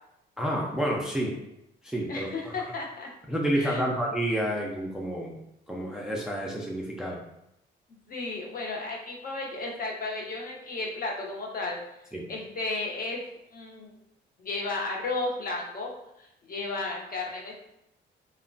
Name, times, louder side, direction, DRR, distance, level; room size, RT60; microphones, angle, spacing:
voice 1, 0.4-1.4 1.8-2.6 3.3-5.3 5.7-7.2 12.1-12.2, right 1 dB, 5° right, -2 dB, 0.4 m, -29 dB
voice 2, 2.1-3.1 3.6-3.9 8.1-11.8 12.3-13.2 13.5-13.9 14.4-15.9 16.2-17.6, left 3 dB, 45° left, -1 dB, 0.7 m, -33 dB
2.9 x 2.1 x 2.6 m, 0.83 s
cardioid pair, 90°, 20 cm